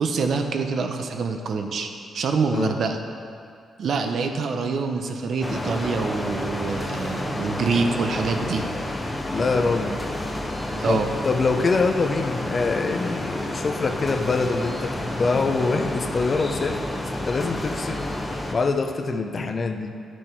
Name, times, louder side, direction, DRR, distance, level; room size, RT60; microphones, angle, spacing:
voice 1, 0.0-1.9 2.1-3.0 3.8-8.6 10.7-11.1, right 4 dB, 65° right, 5 dB, 0.7 m, -25 dB
sound 1, 5.4-18.5, left 1 dB, 15° left, 0.9 m, -30 dB
voice 2, 9.3-10.0 10.9-18.1 18.5-19.9, left 4 dB, 40° left, 6 dB, 0.6 m, -24 dB
10.0 x 6.2 x 4.6 m, 2.3 s
cardioid pair, 90°, 0 cm